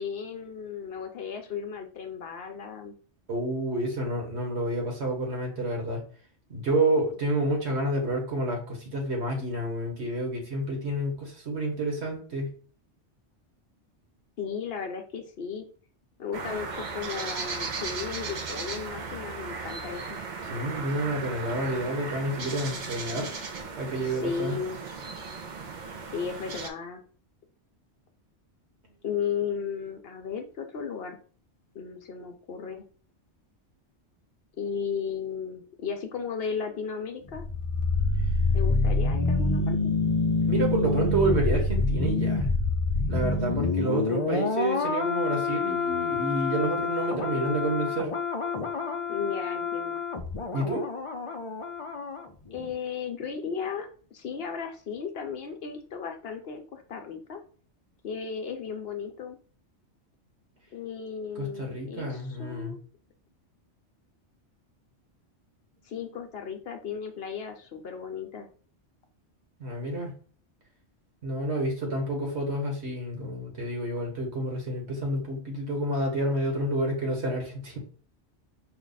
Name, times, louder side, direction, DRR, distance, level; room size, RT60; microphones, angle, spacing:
voice 1, 0.0-3.0 14.4-15.7 16.2-20.2 24.0-24.8 26.1-27.0 29.0-31.2 31.7-32.8 34.6-37.4 38.5-39.9 49.1-50.0 52.5-57.4 58.0-59.4 60.7-62.8 65.8-68.5, left 6 dB, 60° left, 5 dB, 0.8 m, -35 dB
voice 2, 3.3-6.0 6.5-12.5 20.5-23.3 23.8-24.6 40.5-42.5 43.1-48.1 50.5-50.8 61.3-62.7 69.6-70.1 71.2-77.8, right 1 dB, 65° right, 1 dB, 1.7 m, -29 dB
sound 1, 16.3-26.7, right 4 dB, 50° right, 0.7 m, -36 dB
sound 2, 37.3-52.2 52.5-52.7, left 3 dB, 40° left, 0.5 m, -27 dB
5.2 x 2.4 x 4.0 m, 0.42 s
omnidirectional pair, 1.2 m